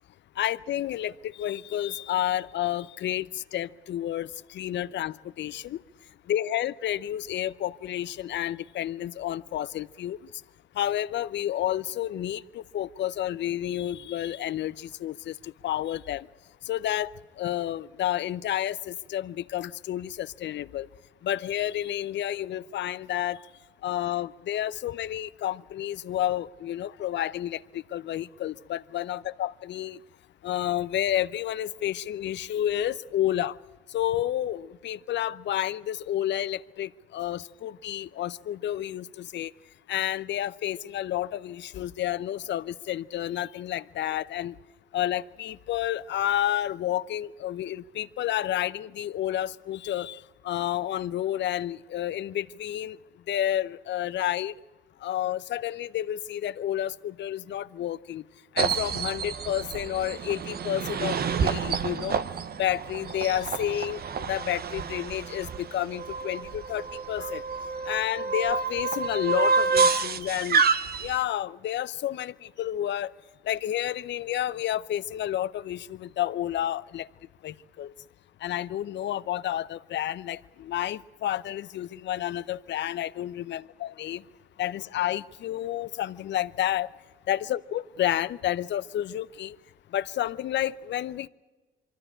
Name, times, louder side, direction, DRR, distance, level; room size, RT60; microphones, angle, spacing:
voice 1, 0.4-5.8 6.3-10.2 10.7-16.3 16.6-20.9 21.2-23.4 23.8-30.0 30.4-33.6 33.9-39.5 39.9-44.6 44.9-53.0 53.3-54.5 55.0-58.2 58.5-62.2 62.6-67.4 67.9-70.6 71.0-73.1 73.4-77.1 77.4-77.9 78.4-84.2 84.6-86.9 87.3-89.6 89.9-91.3, left 12 dB, 65° left, 0.7 m, -30 dB
sound 1, 58.6-71.2, right 5 dB, 50° right, 1.0 m, -28 dB
24.0 x 13.0 x 10.0 m
cardioid pair, 90°, 20 cm